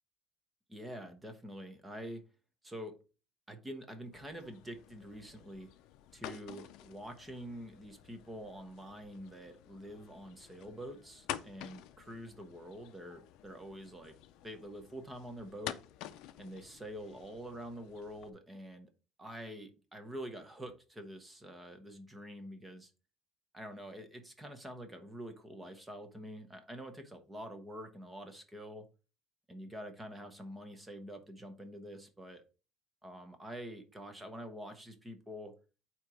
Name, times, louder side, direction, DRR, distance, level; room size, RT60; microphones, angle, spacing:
voice 1, 0.7-2.2 2.6-3.0 3.5-5.7 6.1-14.2 14.4-15.8 16.4-18.9 19.2-22.9 23.5-28.9 29.5-32.4 33.0-35.5, equal, 10° right, 7 dB, 0.9 m, -46 dB
sound 1, 4.1-18.3, left 12 dB, 65° left, 0.5 m, -49 dB
8.7 x 3.0 x 4.7 m, 0.33 s
cardioid pair, 180°, 0 cm